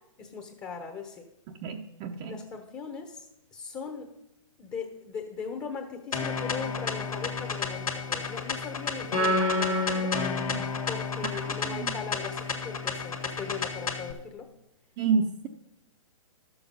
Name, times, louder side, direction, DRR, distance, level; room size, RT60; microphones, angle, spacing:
voice 1, 0.2-1.3 2.2-3.3 3.5-4.1 4.6-10.1 10.9-14.5, left 5 dB, 25° left, 3 dB, 1.1 m, -39 dB
voice 2, 1.5-2.4 9.1-10.6 11.4-11.9 15.0-15.5, right 5 dB, 35° right, 2 dB, 0.7 m, -30 dB
sound 1, 6.1-14.1, left 5 dB, 85° left, 1.8 m, -31 dB
12.0 x 7.1 x 5.4 m, 0.84 s
hypercardioid pair, 130°, 18 cm